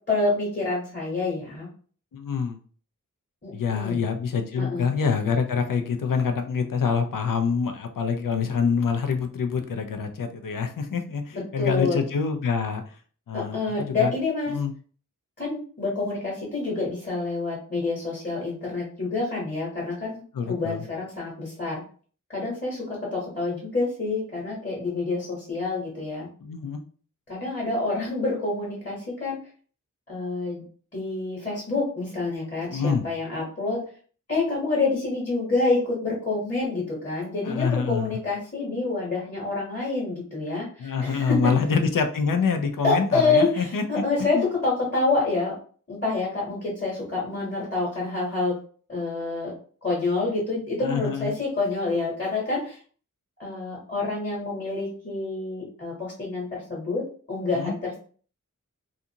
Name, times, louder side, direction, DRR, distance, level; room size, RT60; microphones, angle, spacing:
voice 1, 0.1-1.7 3.4-4.0 4.5-4.8 11.3-12.0 13.3-14.5 15.4-21.8 22.3-26.3 27.3-29.4 30.1-30.6 30.9-33.8 34.3-41.5 42.8-45.6 45.9-48.6 48.9-49.5 49.8-52.8 53.4-58.0, left 3 dB, 35° left, -4 dB, 1.1 m, -27 dB
voice 2, 2.1-2.6 3.5-13.0 13.3-14.1 14.5-14.7 20.3-20.8 26.4-26.8 32.7-33.0 37.4-38.2 40.8-44.0 44.3-44.5 50.8-51.3 57.5-57.7, left 5 dB, 85° left, 6 dB, 0.5 m, -26 dB
2.5 x 2.4 x 2.7 m, 0.43 s
wide cardioid pair, 70°, 32 cm